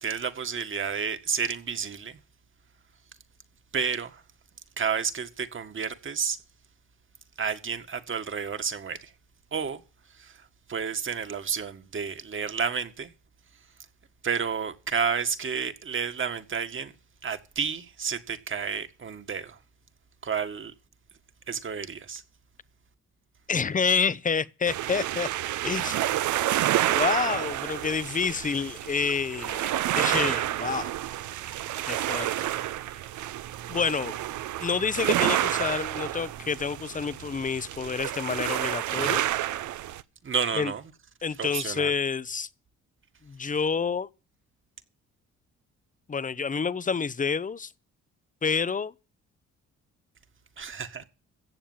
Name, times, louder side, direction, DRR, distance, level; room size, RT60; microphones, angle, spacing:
voice 1, 0.0-2.2 3.7-4.2 4.8-6.4 7.4-9.1 9.5-9.8 10.1-13.1 14.2-16.9 17.2-19.6 20.2-20.7 21.5-22.2 40.2-40.8 41.4-41.9 50.6-51.0, right 6 dB, 40° right, 1.8 m, -31 dB
voice 2, 23.5-25.3 25.6-26.0 26.9-30.9 31.8-32.5 33.7-34.2 34.6-39.2 40.6-40.7 41.2-42.5 43.2-44.1 46.1-47.7 48.4-48.9, left 5 dB, 25° left, 0.7 m, -28 dB
sound 1, 24.7-40.0, right 13 dB, 75° right, 0.7 m, -29 dB
16.0 x 7.2 x 7.4 m
cardioid pair, 90°, 30 cm